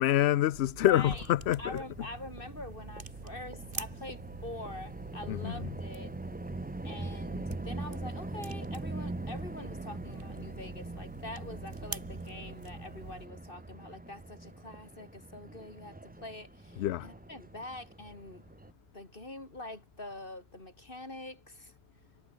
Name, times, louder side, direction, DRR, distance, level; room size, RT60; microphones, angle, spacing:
voice 1, 0.0-1.8 5.3-5.5 16.8-17.1, left 13 dB, 80° left, 0.8 m, -26 dB
sound 1, 0.5-13.3, right 4 dB, 55° right, 2.0 m, -46 dB
voice 2, 0.8-1.3 1.6-6.1 6.8-18.4 18.9-21.7, left 2 dB, 55° left, 4.8 m, -45 dB
sound 2, 1.0-18.7, right 2 dB, 15° right, 0.4 m, -43 dB
omnidirectional pair, 1.1 m